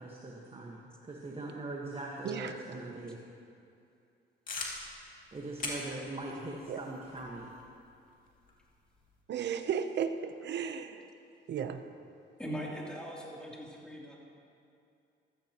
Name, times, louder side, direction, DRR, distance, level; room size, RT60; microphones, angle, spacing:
voice 1, 0.0-3.2 5.3-7.5, right 2 dB, 30° right, -2 dB, 1.4 m, -41 dB
voice 2, 2.2-2.5 6.7-6.8 9.3-11.1 11.5-11.8, right 7 dB, 60° right, 9 dB, 0.8 m, -34 dB
sound 1, 4.5-9.2, left 3 dB, 45° left, 2.4 m, -44 dB
voice 3, 12.4-14.2, equal, 5° left, -5 dB, 3.1 m, -40 dB
15.0 x 14.0 x 3.0 m, 2.6 s
cardioid pair, 90°, 20 cm